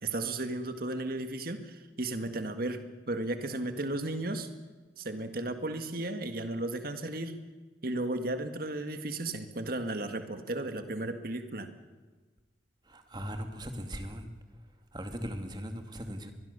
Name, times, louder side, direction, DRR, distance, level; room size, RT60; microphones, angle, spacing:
voice 1, 0.0-2.8 3.1-4.5 5.0-7.4 7.8-11.7, right 2 dB, 55° right, 8 dB, 1.8 m, -34 dB
voice 2, 12.9-14.3 14.9-16.3, equal, 25° right, 6 dB, 2.3 m, -39 dB
24.0 x 21.0 x 6.8 m, 1.3 s
head